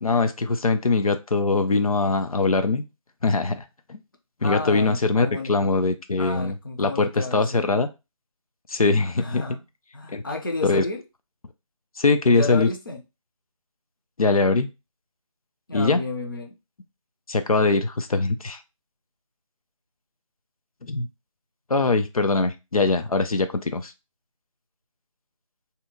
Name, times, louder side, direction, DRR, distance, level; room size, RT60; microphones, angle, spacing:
voice 1, 0.0-2.8 3.2-4.0 4.4-7.9 8.7-9.4 10.1-10.2 10.6-10.8 12.0-12.7 14.2-14.7 15.7-16.0 17.3-18.6 20.8-21.1 21.7-23.9, left 3 dB, 90° left, 0.5 m, -22 dB
voice 2, 4.4-5.5 6.2-7.7 9.2-9.6 9.9-11.0 12.3-13.0 15.7-16.5, left 3 dB, 40° left, 0.5 m, -32 dB
2.8 x 2.1 x 3.6 m
figure-of-eight pair, 160°, 18 cm